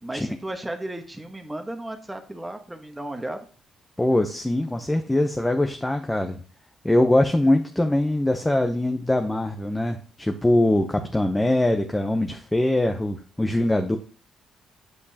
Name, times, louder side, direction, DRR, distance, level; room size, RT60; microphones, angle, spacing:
voice 1, 0.0-3.5, right 1 dB, 10° right, 5 dB, 1.2 m, -34 dB
voice 2, 4.0-6.4 6.8-14.0, left 1 dB, 10° left, 5 dB, 0.7 m, -22 dB
8.3 x 5.3 x 2.8 m, 0.41 s
cardioid pair, 90°, 0 cm